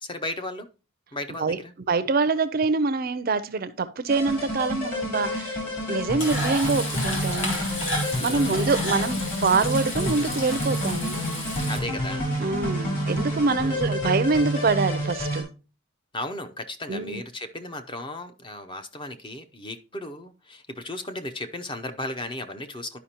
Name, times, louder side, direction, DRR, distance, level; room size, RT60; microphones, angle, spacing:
voice 1, 0.0-0.7 1.1-1.7 8.1-8.7 11.7-12.3 13.6-13.9 16.1-23.0, left 1 dB, 20° left, 0.6 m, -35 dB
voice 2, 1.9-5.6 5.9-7.6 8.2-11.2 12.4-15.5 16.9-17.2, right 4 dB, 40° right, 0.4 m, -25 dB
sound 1, 4.1-15.4, equal, 40° left, 3.2 m, -29 dB
Frying (food), 6.2-11.8, left 1 dB, 60° left, 2.5 m, -32 dB
11.5 x 5.1 x 2.8 m
head